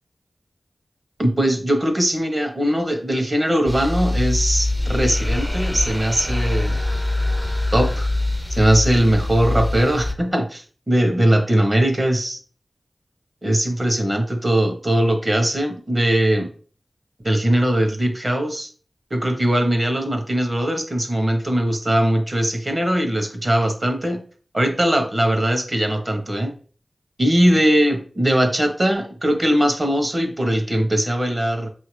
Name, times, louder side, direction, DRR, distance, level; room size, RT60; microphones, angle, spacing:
voice 1, 1.2-6.8 7.7-8.1 8.5-12.4 13.4-16.5 17.2-18.7 19.1-24.2 24.5-26.5 27.2-31.7, right 1 dB, 35° right, 4 dB, 1.1 m, -20 dB
sound 1, 3.7-10.1, left 2 dB, ahead, 0.5 m, -23 dB
5.2 x 2.8 x 3.1 m, 0.40 s
wide cardioid pair, 55°, 0 cm